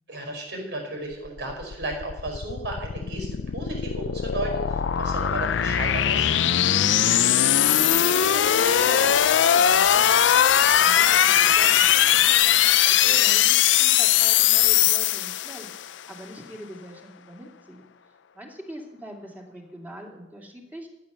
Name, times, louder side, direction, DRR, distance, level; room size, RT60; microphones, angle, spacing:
voice 1, 0.1-3.3 3.5-6.3 12.8-13.2, right 2 dB, 70° right, 1 dB, 5.4 m, -34 dB
sound 1, 1.3-15.9, left 10 dB, 85° left, 0.5 m, -20 dB
voice 2, 7.4-12.4 13.2-15.7 16.1-17.8 18.3-20.9, equal, 10° right, 0 dB, 2.6 m, -42 dB
14.0 x 9.3 x 7.0 m, 0.92 s
head